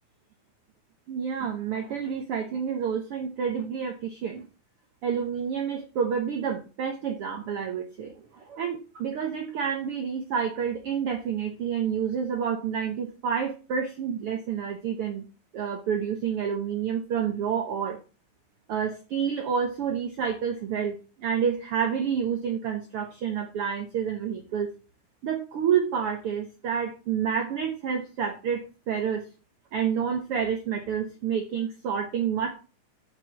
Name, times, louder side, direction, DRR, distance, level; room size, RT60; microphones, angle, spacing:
voice 1, 1.1-4.4 5.0-15.2 15.5-18.0 18.7-24.7 25.2-29.3 29.7-32.6, right 7 dB, 60° right, 4 dB, 1.7 m, -29 dB
7.7 x 5.6 x 7.2 m, 0.33 s
omnidirectional pair, 3.5 m